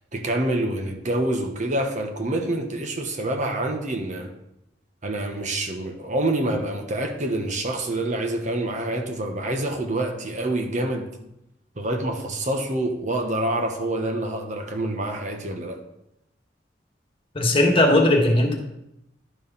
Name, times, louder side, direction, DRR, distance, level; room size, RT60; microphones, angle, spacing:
voice 1, 0.1-4.3 5.0-11.1 11.8-15.8, right 1 dB, 45° right, 1.1 m, -27 dB
voice 2, 17.3-18.5, left 1 dB, 30° left, 1.5 m, -18 dB
11.0 x 4.7 x 5.5 m
head